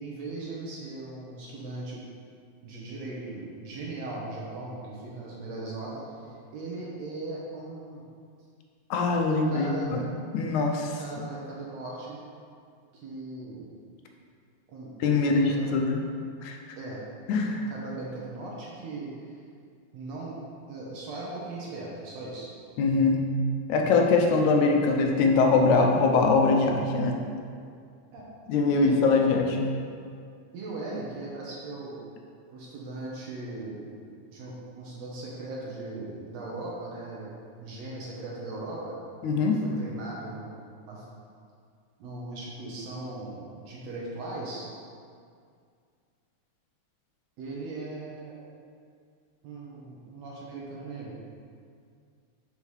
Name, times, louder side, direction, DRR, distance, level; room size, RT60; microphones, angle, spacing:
voice 1, 0.0-2.0 2.6-6.0 6.5-8.0 9.2-10.0 10.4-10.5 11.0-12.2 12.9-13.7 14.7-15.8 16.8-17.0 17.7-19.1 19.9-20.4 20.7-22.5 28.1-28.3 28.7-29.0 30.5-32.0 32.5-33.9 34.3-39.0 39.6-40.5 40.9-41.1 42.0-44.7 47.4-48.4 49.4-51.2, right 2 dB, 65° right, -4 dB, 1.9 m, -38 dB
voice 2, 8.9-11.0 15.0-16.0 16.4-16.6 17.3-17.7 22.8-23.2 23.7-27.2 28.5-29.7 39.2-39.6, left 4 dB, 80° left, 2 dB, 1.9 m, -23 dB
6.9 x 5.5 x 3.1 m, 2.2 s
omnidirectional pair, 3.6 m